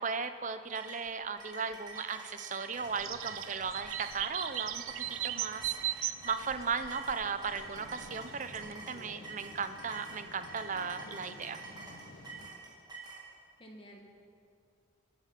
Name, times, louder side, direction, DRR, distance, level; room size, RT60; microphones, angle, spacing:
voice 1, 0.0-11.6, right 5 dB, 35° right, 10 dB, 0.6 m, -37 dB
sound 1, 0.7-13.2, right 4 dB, 20° right, 2.2 m, -47 dB
sound 2, 2.8-8.7, right 12 dB, 80° right, 0.6 m, -39 dB
sound 3, 7.5-12.5, left 1 dB, 90° left, 1.6 m, -53 dB
voice 2, 8.6-9.2 13.6-14.0, equal, 25° left, 0 dB, 2.0 m, -53 dB
24.5 x 8.7 x 5.8 m, 2.4 s
head